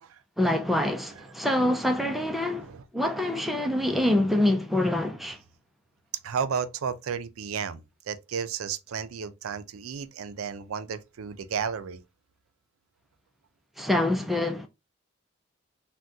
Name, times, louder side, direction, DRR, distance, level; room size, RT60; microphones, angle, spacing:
voice 1, 0.4-5.4 13.8-14.7, left 1 dB, ahead, 0.4 m, -25 dB
voice 2, 6.2-12.0, right 6 dB, 90° right, 0.4 m, -33 dB
3.5 x 2.2 x 2.6 m
head